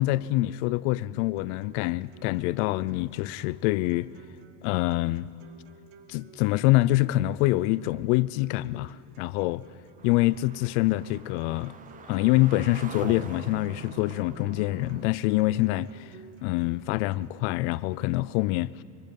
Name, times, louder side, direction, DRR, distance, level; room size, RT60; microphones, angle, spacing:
voice 1, 0.0-4.1 4.6-5.3 6.1-9.6 10.0-11.7 12.1-16.1 16.4-18.8, left 18 dB, 60° left, 0.5 m, -25 dB
sound 1, 1.3-17.3, right 5 dB, 55° right, 1.8 m, -55 dB
sound 2, 10.0-15.1, right 6 dB, 20° right, 0.8 m, -42 dB
24.5 x 22.5 x 5.3 m
supercardioid pair, 135°, 40 cm